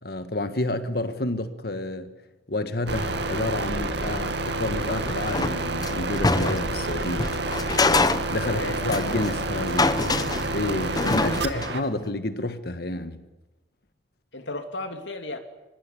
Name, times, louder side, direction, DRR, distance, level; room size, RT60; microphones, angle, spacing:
voice 1, 0.0-2.1 2.5-7.3 8.3-9.9 10.5-13.2, left 2 dB, 60° left, 1.7 m, -29 dB
sound 1, 2.9-11.8, right 2 dB, 70° right, 2.3 m, -29 dB
sound 2, 4.8-6.8 7.2-9.3 9.6-11.8, left 3 dB, 20° left, 0.8 m, -25 dB
voice 2, 8.4-9.4 11.1-11.6 14.3-15.4, left 2 dB, 85° left, 3.2 m, -35 dB
25.5 x 22.0 x 10.0 m
head